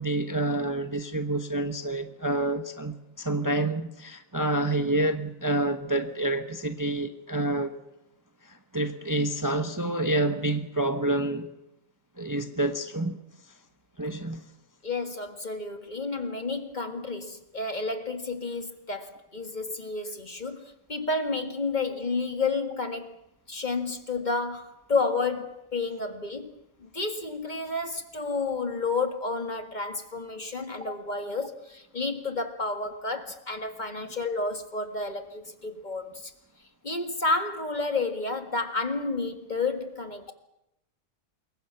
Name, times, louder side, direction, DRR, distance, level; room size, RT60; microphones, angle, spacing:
voice 1, 0.0-7.7 8.4-11.5 12.2-13.2 14.0-14.4, right 2 dB, 15° right, 0.9 m, -28 dB
voice 2, 14.8-23.1 23.5-26.5 26.8-36.3 36.8-40.3, left 3 dB, 35° left, 1.9 m, -31 dB
27.0 x 22.5 x 5.9 m
omnidirectional pair, 1.4 m